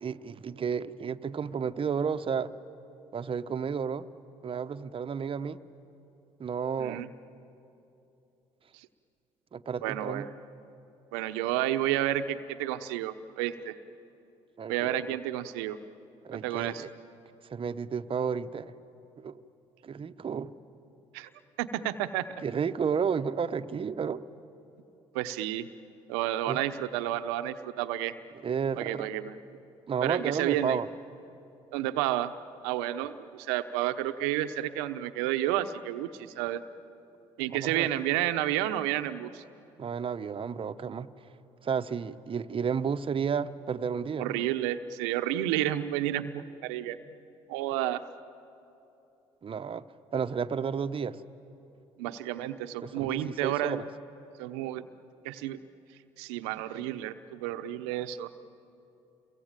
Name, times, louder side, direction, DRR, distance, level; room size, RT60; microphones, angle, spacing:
voice 1, 0.0-2.5 3.1-4.1 4.4-5.6 6.4-7.1 9.5-10.2 14.6-14.7 15.1-15.2 16.2-16.9 17.5-18.7 19.2-19.4 19.8-20.5 22.4-24.3 26.5-26.6 28.4-29.1 29.9-30.9 37.5-37.9 39.8-41.1 41.6-44.3 49.4-49.8 50.1-51.2 52.8-53.9, right 6 dB, 40° right, 10 dB, 0.9 m, -32 dB
voice 2, 6.8-7.1 8.7-8.9 9.8-10.3 11.1-13.8 14.7-15.8 16.3-16.8 21.1-21.3 21.6-22.2 25.1-25.7 26.1-28.1 28.8-29.4 30.0-30.8 31.7-32.4 32.6-36.6 37.4-39.4 44.2-47.0 47.5-48.0 52.0-53.8 54.4-54.9 55.2-55.6 56.2-58.3, right 13 dB, 85° right, 11 dB, 0.9 m, -31 dB
28.5 x 22.5 x 9.0 m, 2.9 s
hypercardioid pair, 60°, 14 cm